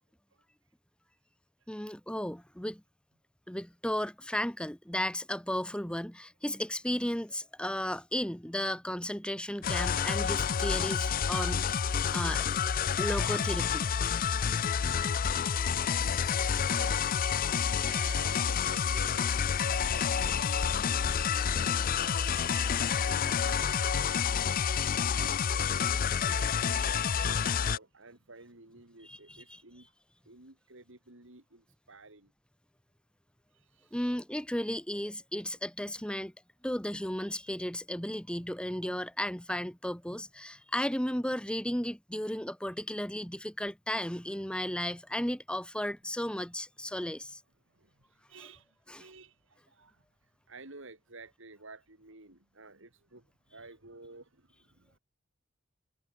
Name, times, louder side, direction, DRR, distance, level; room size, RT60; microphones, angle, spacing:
voice 1, 1.7-2.8 3.5-12.4 13.0-13.9 23.5-23.6 26.3-26.4 29.1-29.2 29.5-29.6 33.9-36.3 36.6-47.4 48.9-49.0, left 1 dB, 5° left, 1.9 m, -34 dB
sound 1, 9.6-27.8, left 7 dB, 45° left, 0.5 m, -29 dB
voice 2, 16.7-17.5 17.8-25.9 26.3-29.9 30.3-32.3 33.5-34.0 47.7-55.0, right 3 dB, 65° right, 3.8 m, -52 dB
head